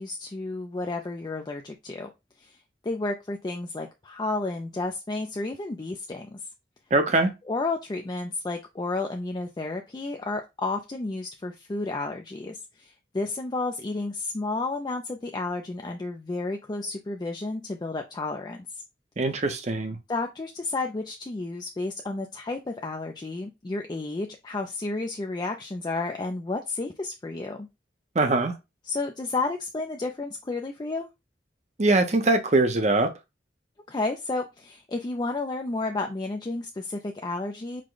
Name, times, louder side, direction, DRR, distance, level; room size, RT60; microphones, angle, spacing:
voice 1, 0.0-2.1 2.4-6.4 7.5-18.8 20.1-27.7 28.8-31.1 33.9-37.8, left 3 dB, 25° left, 0.4 m, -32 dB
voice 2, 6.9-7.3 19.2-20.0 28.1-28.5 31.8-33.1, right 2 dB, 40° right, 0.7 m, -22 dB
4.9 x 2.2 x 3.8 m
head